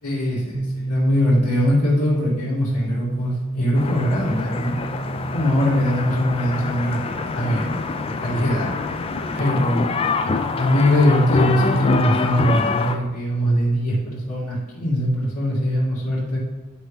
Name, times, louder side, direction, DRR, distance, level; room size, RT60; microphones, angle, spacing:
voice 1, 0.0-4.8 5.2-8.7 9.3-9.9 10.6-16.4, equal, 90° left, -9 dB, 2.2 m, -21 dB
sound 1, 0.5-14.2, right 1 dB, 60° right, 1.0 m, -33 dB
sound 2, 3.7-12.9, left 4 dB, 25° left, 0.3 m, -25 dB
9.8 x 3.5 x 4.9 m, 1.3 s
head